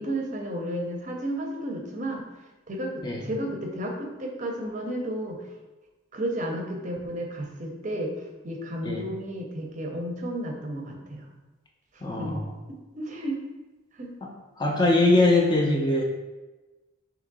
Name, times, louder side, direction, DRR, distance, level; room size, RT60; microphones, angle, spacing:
voice 1, 0.0-2.2 2.7-5.4 6.1-11.3 12.1-12.4 12.7-13.4 14.0-14.1, right 1 dB, 35° right, 1 dB, 0.6 m, -32 dB
voice 2, 12.0-12.5 14.2-14.3 14.6-16.0, left 2 dB, 20° left, 0 dB, 0.4 m, -22 dB
3.5 x 2.9 x 3.9 m, 1.1 s
head